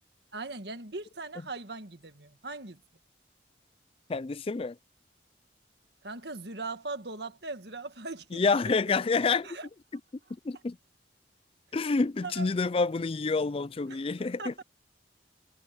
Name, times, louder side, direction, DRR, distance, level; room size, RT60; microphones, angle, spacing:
voice 1, 0.3-2.8 6.0-8.8 9.4-9.7 12.2-12.5 13.9-14.0 14.4-14.6, right 3 dB, 65° right, 1.8 m, -40 dB
voice 2, 4.1-4.8 8.3-9.5 10.4-10.8 11.7-14.6, left 4 dB, 30° left, 0.4 m, -28 dB
head